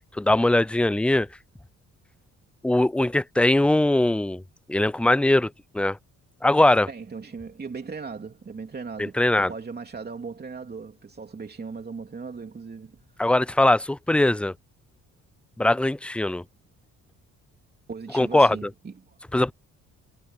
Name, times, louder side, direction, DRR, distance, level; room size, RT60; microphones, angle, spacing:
voice 1, 0.2-1.3 2.6-4.4 4.7-6.0 6.4-6.9 9.0-9.5 13.2-14.5 15.6-16.4 18.1-18.6 19.3-19.5, left 1 dB, 5° left, 0.4 m, -21 dB
voice 2, 6.9-13.0 17.9-19.2, right 5 dB, 30° right, 3.1 m, -38 dB
cardioid pair, 90°, 30 cm